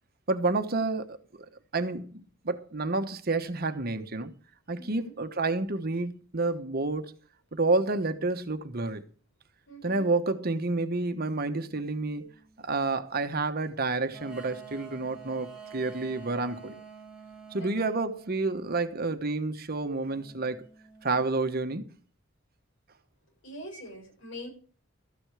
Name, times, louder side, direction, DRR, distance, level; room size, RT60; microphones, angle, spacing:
voice 1, 0.3-1.2 1.7-4.3 4.7-7.1 7.5-9.0 9.8-12.3 12.6-16.8 17.5-20.6 21.0-21.9, right 3 dB, 50° right, 1.2 m, -29 dB
voice 2, 4.8-5.1 9.7-10.0 17.6-18.0 23.4-24.5, equal, 70° left, 7.6 m, -43 dB
sound 1, 11.5-12.8 14.1-18.6 20.1-21.2, right 6 dB, 5° right, 3.8 m, -48 dB
13.5 x 9.8 x 4.9 m
head